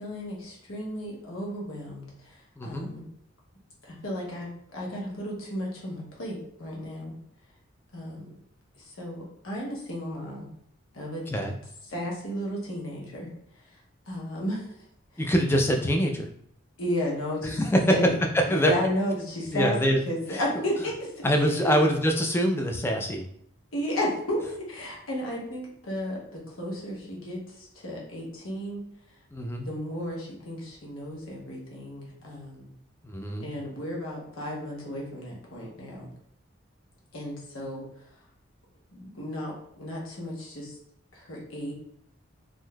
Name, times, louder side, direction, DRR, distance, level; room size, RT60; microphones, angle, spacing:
voice 1, 0.0-3.0 3.9-7.1 7.9-8.2 8.8-10.5 10.9-11.2 11.9-13.3 14.1-14.7 15.1-15.3 16.8-17.6 17.9-18.2 18.5-19.8 20.1-21.2 21.6-21.8 23.7-28.8 29.6-32.7 33.4-36.1 37.1-37.8 38.9-40.8 41.1-41.7, left 1 dB, 85° left, -3 dB, 1.1 m, -33 dB
voice 2, 2.6-2.9 11.3-11.6 15.2-16.3 17.4-18.0 18.3-18.7 19.5-20.0 20.3-20.4 21.2-23.2 29.3-29.7 33.0-33.5, equal, 10° left, 2 dB, 0.3 m, -24 dB
3.6 x 2.6 x 2.3 m, 0.70 s
head